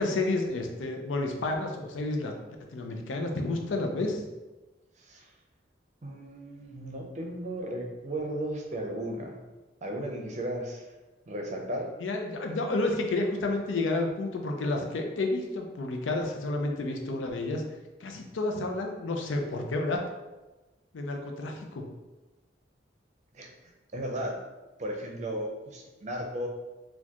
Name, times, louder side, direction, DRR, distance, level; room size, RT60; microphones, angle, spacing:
voice 1, 0.0-4.2 12.0-17.6 18.0-20.0 20.9-21.9, left 2 dB, 90° left, 3 dB, 0.5 m, -30 dB
voice 2, 5.0-5.3 6.0-9.4 9.8-10.9 11.3-11.9 23.3-24.4 24.8-26.5, right 1 dB, 40° right, 2 dB, 0.5 m, -35 dB
4.2 x 2.3 x 2.9 m, 1.1 s
head